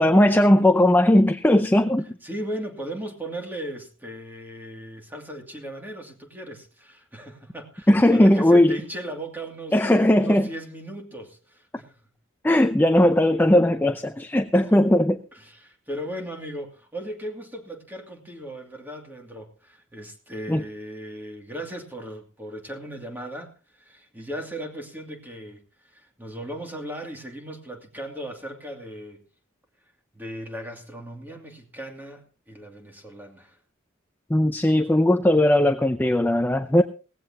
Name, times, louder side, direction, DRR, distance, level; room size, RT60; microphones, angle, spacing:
voice 1, 0.0-2.0 7.9-8.8 9.7-10.5 12.4-15.2 20.5-20.6 34.3-36.8, left 1 dB, 10° left, 8 dB, 0.5 m, -18 dB
voice 2, 2.2-9.8 10.1-12.0 14.7-14.8 15.3-29.2 30.1-33.6, right 1 dB, 10° right, 3 dB, 2.5 m, -37 dB
18.0 x 15.5 x 2.9 m, 0.34 s
head